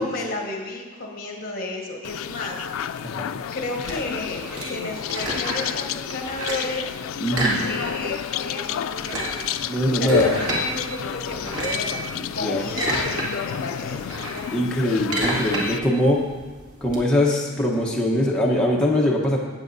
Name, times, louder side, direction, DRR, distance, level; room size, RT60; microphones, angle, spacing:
voice 1, 0.0-3.0 3.5-6.9 7.6-9.5 10.0-14.1, left 2 dB, 45° left, 0 dB, 1.5 m, -32 dB
sound 1, 2.0-15.8, left 8 dB, 80° left, 0.3 m, -30 dB
sound 2, 3.8-5.8 6.1-6.8 7.3-8.2 8.4-8.5 8.9-10.7 11.3-11.9 12.4-13.3 13.6-17.0, right 1 dB, 80° right, 2.4 m, -29 dB
voice 2, 7.2-7.7 9.6-10.3 12.2-12.7 14.5-16.3 16.8-19.4, left 1 dB, 5° left, -4 dB, 1.0 m, -22 dB
17.0 x 8.1 x 2.7 m, 1.3 s
head